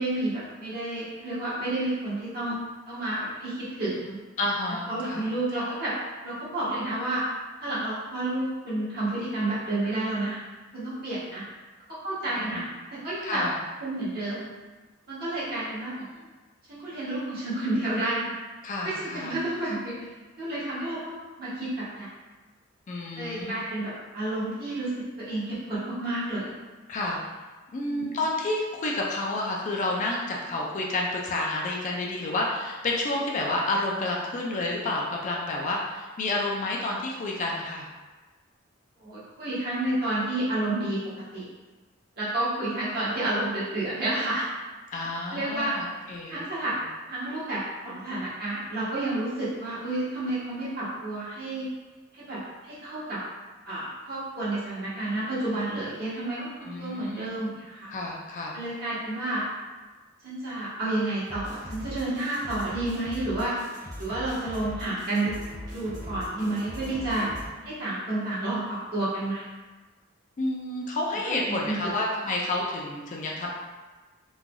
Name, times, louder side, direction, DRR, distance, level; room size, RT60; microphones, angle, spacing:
voice 1, 0.0-2.5 2.9-4.2 4.9-5.9 6.2-7.2 7.6-10.4 10.7-11.4 12.0-13.4 13.8-14.5 15.1-15.9 16.7-18.3 18.8-20.1 20.4-22.1 23.1-24.9 25.3-26.5 27.8-28.2 39.0-41.0 41.3-41.4 42.2-44.5 45.3-45.8 46.3-46.7 47.1-51.7 52.1-53.2 53.7-57.9 58.5-59.4 60.2-63.5 64.0-65.3 65.7-67.3 67.6-69.4 71.2-71.8, right 2 dB, 50° right, -10 dB, 1.2 m, -30 dB
voice 2, 4.4-5.3 5.5-5.8 12.4-12.6 13.2-13.6 15.5-15.6 16.2-16.3 18.6-19.4 22.9-23.6 26.9-27.2 27.7-37.9 44.9-46.4 56.7-57.3 57.9-58.5 70.4-73.5, left 2 dB, 35° left, -2 dB, 0.3 m, -30 dB
sound 1, 61.3-67.5, equal, 20° right, 1.0 m, -40 dB
3.1 x 2.5 x 2.2 m, 1.3 s
head